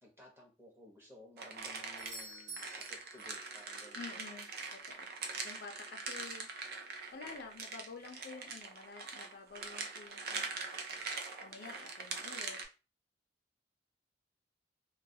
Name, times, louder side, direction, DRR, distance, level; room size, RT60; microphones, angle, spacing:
voice 1, 0.0-4.1 5.2-5.4 7.2-7.3 11.5-11.9, left 1 dB, 15° right, -1 dB, 0.8 m, -57 dB
sound 1, 1.4-12.7, right 4 dB, 60° right, 0.4 m, -43 dB
Doorbell, 2.0-3.8 7.9-8.0, right 2 dB, 90° right, 1.3 m, -50 dB
voice 2, 4.0-6.5 7.1-10.7 11.4-12.6, left 4 dB, 60° left, 4 dB, 0.5 m, -50 dB
2.3 x 2.2 x 2.7 m, 0.31 s
head